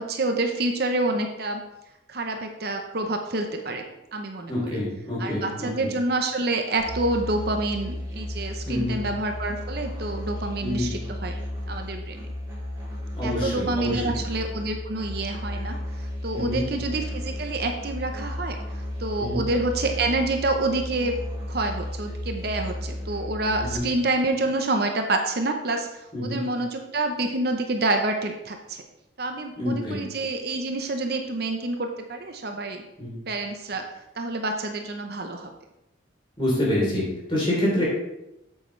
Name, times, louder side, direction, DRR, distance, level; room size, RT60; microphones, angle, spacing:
voice 1, 0.0-1.6 2.1-3.8 4.1-4.8 5.2-11.3 11.7-12.3 13.2-15.8 16.2-18.6 19.0-21.1 21.5-25.9 26.2-28.8 29.2-32.8 33.3-33.8 34.2-35.5, right 2 dB, 55° right, 4 dB, 0.8 m, -27 dB
voice 2, 4.5-5.9 8.7-9.0 10.6-10.9 13.1-14.1 16.3-16.6 19.2-19.4 23.6-23.8 26.1-26.4 29.6-30.0 33.0-33.1 36.4-37.8, left 1 dB, 25° left, -5 dB, 3.4 m, -27 dB
Musical instrument, 6.8-23.8, left 1 dB, 20° right, 3.3 m, -34 dB
8.4 x 8.0 x 3.2 m, 0.90 s
head